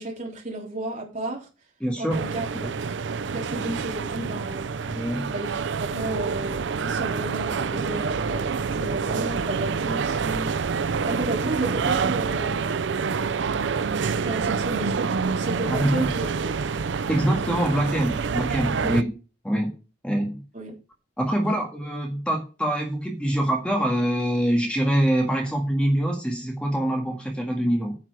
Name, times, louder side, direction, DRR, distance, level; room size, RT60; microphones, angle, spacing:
voice 1, 0.0-1.5 2.0-2.7 3.3-4.7 5.3-10.5 11.0-13.4 14.2-16.3 16.6-16.8 18.9-19.0 20.5-20.8 21.4-21.6, right 1 dB, 40° right, 3.5 m, -33 dB
voice 2, 1.8-2.2 2.6-2.7 4.9-5.3 15.6-16.1 17.1-19.1 19.4-19.7 20.0-20.4 21.2-27.9, right 1 dB, 5° left, 1.8 m, -24 dB
sound 1, 2.1-19.0, right 5 dB, 75° right, 0.5 m, -27 dB
9.5 x 5.8 x 6.7 m
head